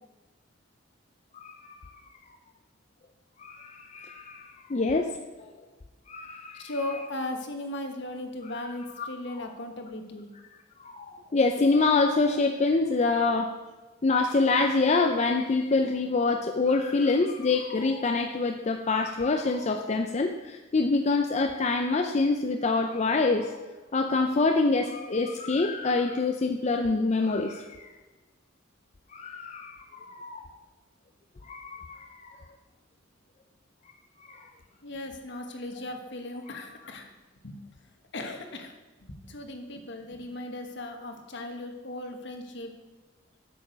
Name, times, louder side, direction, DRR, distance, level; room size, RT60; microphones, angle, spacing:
voice 1, 3.4-5.1 5.4-5.5 6.1-6.7 9.0-9.1 10.8-13.5 14.0-23.6 23.9-27.9 29.1-30.5 31.4-32.4 34.3-34.5 36.5-36.7, left 3 dB, 35° left, 4 dB, 0.5 m, -26 dB
voice 2, 6.5-10.3 34.8-37.1 37.4-37.6 38.1-38.7 39.0-42.8, left 1 dB, 60° left, 5 dB, 1.3 m, -37 dB
8.7 x 7.6 x 5.2 m, 1.2 s
head